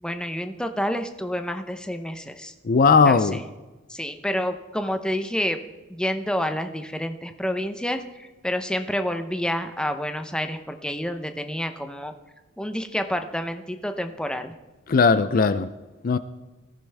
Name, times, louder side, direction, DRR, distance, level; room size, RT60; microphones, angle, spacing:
voice 1, 0.0-2.5 3.0-3.4 3.9-5.6 5.9-12.1 12.6-14.5, equal, 5° left, 7 dB, 0.7 m, -29 dB
voice 2, 2.6-3.4 14.9-15.7 16.0-16.2, left 5 dB, 40° left, 13 dB, 0.4 m, -18 dB
20.5 x 14.5 x 3.4 m, 1.2 s
head